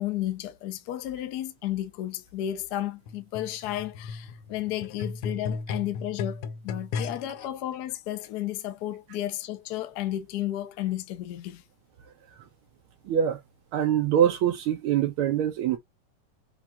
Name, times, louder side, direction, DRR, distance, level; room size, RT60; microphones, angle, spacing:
voice 1, 0.0-11.6, left 13 dB, 70° left, 1.0 m, -33 dB
sound 1, 3.1-7.5 8.2-8.3, left 5 dB, 85° left, 1.6 m, -35 dB
voice 2, 13.0-13.4 13.7-15.8, right 10 dB, 85° right, 1.5 m, -24 dB
5.8 x 2.4 x 2.6 m
omnidirectional pair, 2.4 m